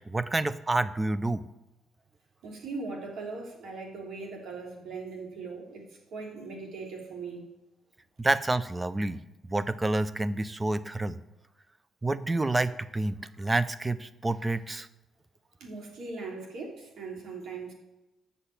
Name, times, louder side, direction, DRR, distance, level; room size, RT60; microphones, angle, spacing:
voice 1, 0.1-1.4 8.2-9.2 9.4-11.2 12.0-14.9, right 2 dB, 20° right, 15 dB, 0.6 m, -28 dB
voice 2, 2.4-7.5 15.6-17.7, right 4 dB, 75° right, 0 dB, 3.0 m, -39 dB
8.3 x 6.8 x 8.2 m, 0.96 s
cardioid pair, 90°, 0 cm